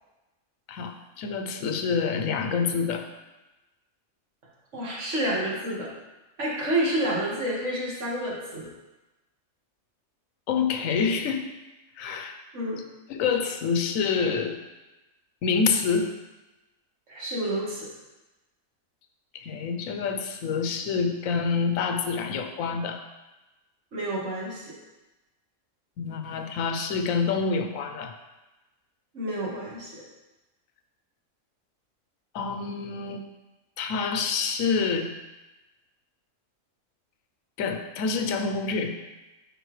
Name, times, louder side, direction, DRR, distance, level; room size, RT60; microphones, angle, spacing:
voice 1, 0.7-3.1 10.5-11.4 12.0-12.4 13.1-14.6 15.4-16.1 19.3-23.0 26.0-28.2 32.3-33.2 33.8-35.1 37.6-39.0, left 5 dB, 75° left, 6 dB, 1.1 m, -27 dB
voice 2, 4.7-5.9 6.4-8.7 12.5-12.8 17.1-17.9 23.9-24.7 29.1-30.0, right 1 dB, 60° right, -5 dB, 2.0 m, -29 dB
10.5 x 4.1 x 3.2 m, 1.1 s
omnidirectional pair, 1.4 m